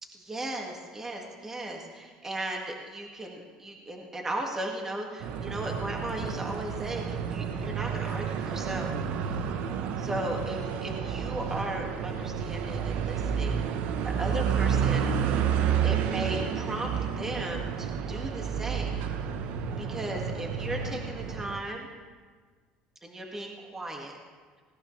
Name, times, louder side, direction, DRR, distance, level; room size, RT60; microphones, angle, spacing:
voice 1, 0.1-8.9 10.0-13.6 14.0-15.1 15.8-16.9 17.2-18.9 19.8-21.9 23.0-24.1, right 1 dB, 20° right, 1 dB, 2.1 m, -36 dB
sound 1, 5.2-21.6, right 7 dB, 70° right, 1.1 m, -30 dB
19.5 x 18.0 x 3.3 m, 1.5 s
supercardioid pair, 110°, 3 cm